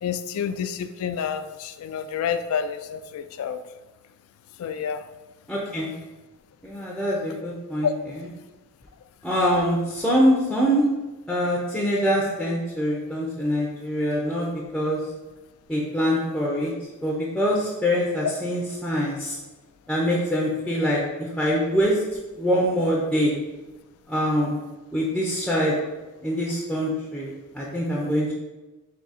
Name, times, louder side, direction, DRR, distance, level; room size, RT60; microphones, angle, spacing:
voice 1, 0.0-3.6 4.6-5.0 7.8-7.9, left 7 dB, 70° left, 12 dB, 0.3 m, -28 dB
voice 2, 5.5-5.9 6.6-7.9 9.2-10.8 11.3-15.0 15.7-16.7 17.0-19.4 19.9-22.0 22.4-23.3 24.1-24.5 24.9-25.7 26.2-28.3, equal, 5° left, -5 dB, 0.5 m, -24 dB
3.7 x 2.7 x 4.0 m, 1.1 s
head